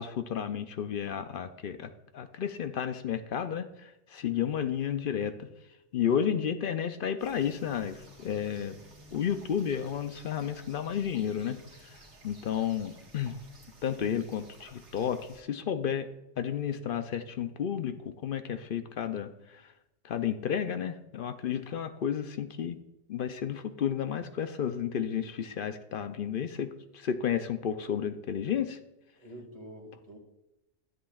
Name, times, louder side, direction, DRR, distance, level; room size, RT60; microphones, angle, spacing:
voice 1, 0.0-5.5 5.9-8.8 9.1-11.6 12.2-13.4 13.8-16.1 16.4-19.6 20.0-22.8 23.1-28.8, left 8 dB, 60° left, 9 dB, 0.7 m, -32 dB
sound 1, 7.2-15.4, right 1 dB, 65° right, 1.9 m, -54 dB
voice 2, 29.1-30.2, right 1 dB, 30° right, 1 dB, 2.0 m, -47 dB
13.0 x 7.7 x 2.4 m, 0.93 s
omnidirectional pair, 1.2 m